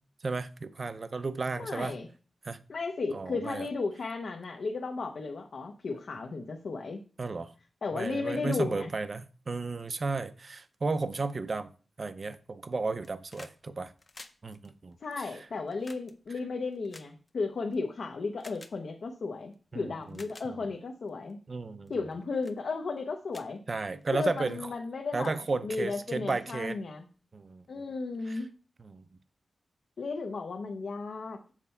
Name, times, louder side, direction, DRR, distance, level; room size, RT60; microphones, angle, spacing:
voice 1, 0.2-2.0 2.4-2.6 3.1-3.7 7.2-7.5 7.9-11.7 12.0-13.9 14.4-15.3 19.7-20.2 21.5-21.9 23.7-24.7 25.1-26.8 27.3-27.7 28.3-28.4 28.8-29.0, right 3 dB, 40° right, 0.5 m, -34 dB
voice 2, 1.6-2.1 2.7-7.0 7.8-8.9 15.0-21.4 21.9-23.6 24.1-25.4 25.6-27.1 27.7-28.5 30.0-31.5, left 4 dB, 65° left, 0.7 m, -34 dB
sound 1, 12.9-13.6 13.9-17.8 18.4-18.8 19.5-19.6 20.0-20.5 21.1-21.3 21.9-22.1 22.4-22.6 23.0-23.1 23.3-24.2 25.4-25.5, left 2 dB, 30° left, 0.6 m, -51 dB
7.4 x 4.3 x 5.4 m
wide cardioid pair, 140°, 0 cm